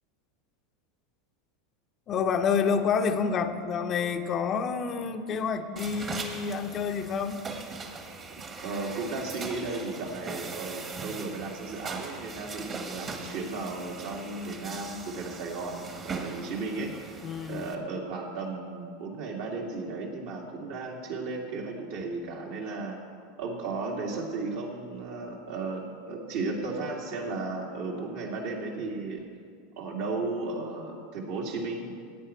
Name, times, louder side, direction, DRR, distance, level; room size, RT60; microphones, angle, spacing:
voice 1, 2.1-7.4 17.2-17.7, left 6 dB, 40° left, 6 dB, 0.9 m, -28 dB
sound 1, 5.8-17.8, right 4 dB, 30° right, 1.5 m, -40 dB
voice 2, 8.3-17.0 17.5-23.0 23.4-29.3 29.8-31.9, right 3 dB, 65° right, -2 dB, 2.5 m, -35 dB
16.0 x 9.0 x 4.6 m, 2.1 s
hypercardioid pair, 90°, 0 cm